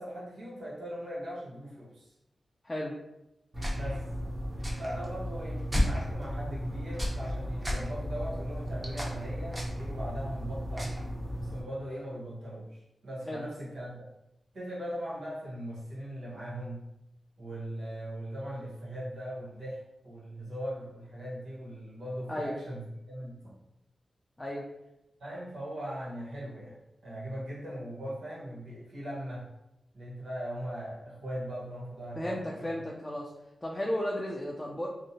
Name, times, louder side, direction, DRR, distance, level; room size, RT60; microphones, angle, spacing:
voice 1, 0.0-2.1 3.7-4.1 4.8-10.9 11.4-14.0 14.5-16.9 17.4-23.5 25.2-29.5 29.9-32.7, equal, 85° right, -7 dB, 1.0 m, -39 dB
voice 2, 2.6-3.0 13.2-13.5 22.3-22.6 24.4-24.7 32.1-33.3 33.6-34.9, left 1 dB, 20° left, -3 dB, 0.4 m, -34 dB
sound 1, 3.5-11.6, equal, 20° right, 0.9 m, -33 dB
2.7 x 2.1 x 2.8 m, 0.89 s
cardioid pair, 45°, 0 cm